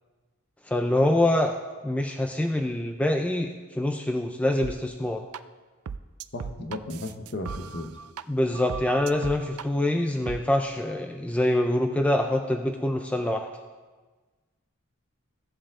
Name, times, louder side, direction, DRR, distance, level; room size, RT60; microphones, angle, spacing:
voice 1, 0.7-5.2 8.3-13.5, left 1 dB, 5° left, 4 dB, 0.4 m, -25 dB
sound 1, 4.6-4.7 5.3-5.4 5.9-8.2 8.5-9.7 10.3-10.4, right 6 dB, 85° right, 0.4 m, -37 dB
voice 2, 6.3-7.9, left 1 dB, 50° left, 5 dB, 0.9 m, -35 dB
16.0 x 7.6 x 3.7 m, 1.3 s
head